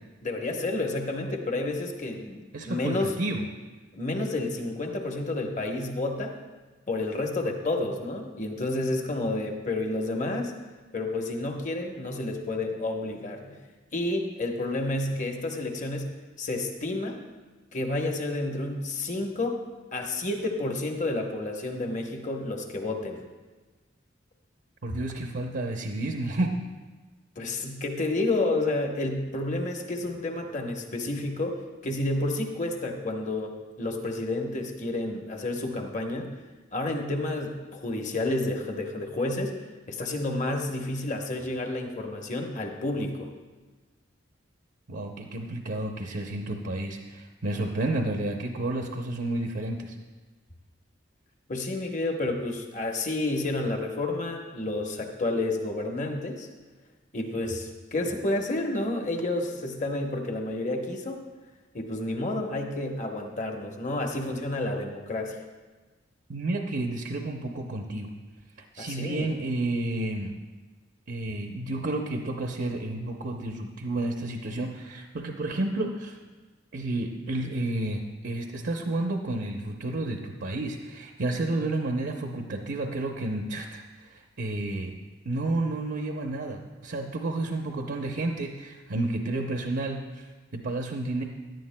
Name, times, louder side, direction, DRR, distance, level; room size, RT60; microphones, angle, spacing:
voice 1, 0.2-3.1 3.9-6.4 6.9-10.5 10.9-13.6 13.9-17.2 17.7-19.6 19.9-23.2 27.4-36.4 36.7-39.6 39.9-43.3 51.5-56.5 57.1-61.2 61.7-65.4 68.8-69.3, left 2 dB, 40° left, 3 dB, 1.0 m, -30 dB
voice 2, 2.5-3.5 24.8-26.6 44.9-50.0 66.3-68.1 68.7-70.4 71.1-76.2 76.7-85.0 85.3-91.2, right 2 dB, 60° right, 2 dB, 0.7 m, -31 dB
17.0 x 11.0 x 2.2 m, 1.3 s
head